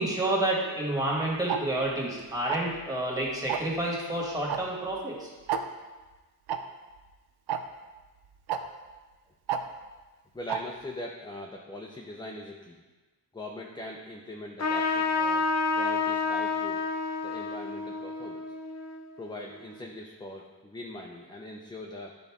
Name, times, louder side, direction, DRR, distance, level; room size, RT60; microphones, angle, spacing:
voice 1, 0.0-5.3, right 1 dB, 10° right, -4 dB, 1.7 m, -29 dB
Tick-tock, 1.5-1.6 2.5-2.8 3.5-3.7 4.5-4.6 4.9-5.0 5.5-5.6 6.5-6.6 7.5-7.6 8.5-8.6 9.5-9.6 10.5-10.6, right 9 dB, 80° right, 0.6 m, -29 dB
voice 2, 10.3-12.8 13.3-16.8 17.2-18.4 19.2-22.2, left 1 dB, 10° left, 0 dB, 0.5 m, -41 dB
Trumpet, 14.6-19.6, left 4 dB, 40° left, 0.8 m, -29 dB
10.5 x 3.9 x 3.6 m, 1.2 s
wide cardioid pair, 130°, 38 cm